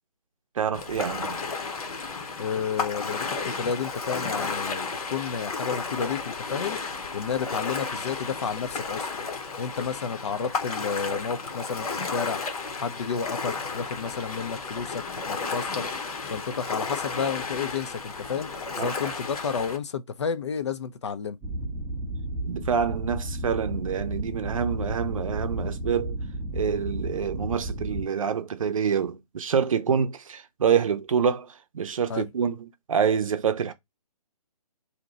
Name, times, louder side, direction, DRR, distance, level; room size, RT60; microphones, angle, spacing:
voice 1, 0.6-1.4 18.8-19.1 22.4-26.2 26.5-33.7, right 7 dB, 55° right, 0.6 m, -27 dB
Ocean, 0.7-19.8, left 4 dB, 60° left, 0.8 m, -33 dB
voice 2, 2.4-6.8 7.1-9.2 9.6-12.4 12.8-15.8 16.2-18.5 18.7-21.4 29.9-30.0 32.1-32.3, left 6 dB, 45° left, 0.4 m, -31 dB
sound 1, 21.4-28.0, right 1 dB, 5° right, 0.7 m, -32 dB
2.7 x 2.1 x 4.0 m
figure-of-eight pair, 140°, 21 cm